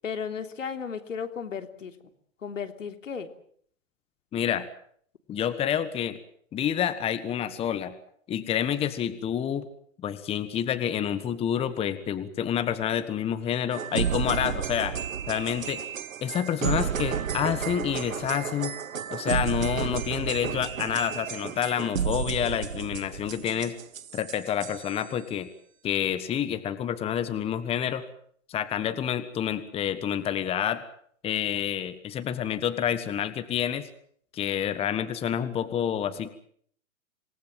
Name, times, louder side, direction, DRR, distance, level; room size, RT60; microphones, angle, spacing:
voice 1, 0.0-2.0 2.4-3.3, left 6 dB, 75° left, 7 dB, 3.4 m, -34 dB
voice 2, 4.3-4.7 5.3-6.2 6.5-7.9 8.3-9.7 10.0-14.9 15.3-15.8 16.2-18.7 19.1-23.8 24.1-25.5 25.8-28.0 28.5-30.8 31.2-33.9 34.3-36.3, left 9 dB, 15° left, 12 dB, 1.4 m, -28 dB
sound 1, 13.7-25.1, right 8 dB, 85° right, 1.0 m, -32 dB
27.0 x 19.5 x 7.6 m, 0.62 s
hypercardioid pair, 130°, 39 cm